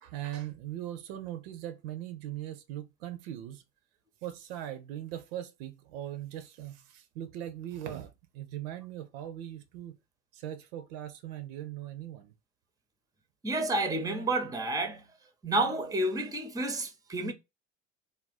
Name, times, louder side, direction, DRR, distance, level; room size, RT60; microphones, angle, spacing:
voice 1, 0.0-3.6 4.2-10.0 10.3-12.3, right 12 dB, 70° right, 0.6 m, -40 dB
voice 2, 13.4-15.0 15.4-17.3, right 2 dB, 10° right, 0.6 m, -30 dB
2.4 x 2.2 x 3.9 m
hypercardioid pair, 65°, 33 cm